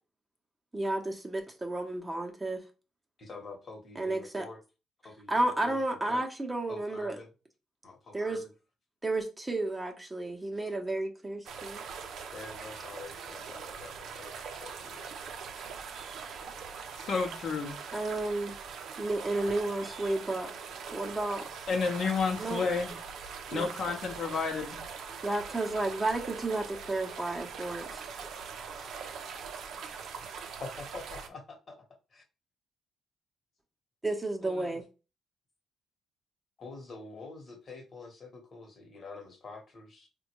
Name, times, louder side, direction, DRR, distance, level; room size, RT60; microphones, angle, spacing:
voice 1, 0.7-2.6 4.0-4.4 5.3-7.2 8.1-8.4 9.0-11.8 16.2-16.4 17.9-18.5 19.0-20.5 20.9-21.4 22.4-22.6 23.5-23.7 25.2-28.0 34.0-34.8, right 2 dB, 15° right, 0.7 m, -32 dB
voice 2, 3.2-4.6 5.0-6.2 6.7-7.3 7.8-8.4 12.3-15.1 23.5-23.6 30.6-31.8 32.1-32.2 36.6-40.1, left 3 dB, 45° left, 1.0 m, -46 dB
sound 1, 11.5-31.3, right 6 dB, 75° right, 0.5 m, -42 dB
voice 3, 17.0-17.8 21.7-22.9 23.5-24.8 34.4-34.7, left 5 dB, 60° left, 0.7 m, -31 dB
3.6 x 2.2 x 3.0 m
cardioid pair, 90°, 0 cm